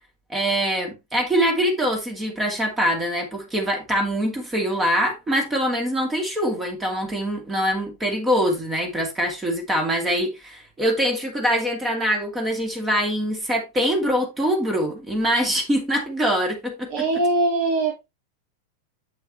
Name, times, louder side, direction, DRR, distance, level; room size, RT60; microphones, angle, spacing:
voice 1, 0.3-17.1, equal, 15° right, 2.7 m, -24 dB
voice 2, 16.9-18.1, right 2 dB, 45° right, 2.4 m, -22 dB
7.9 x 7.8 x 3.1 m
figure-of-eight pair, 90°, 0 cm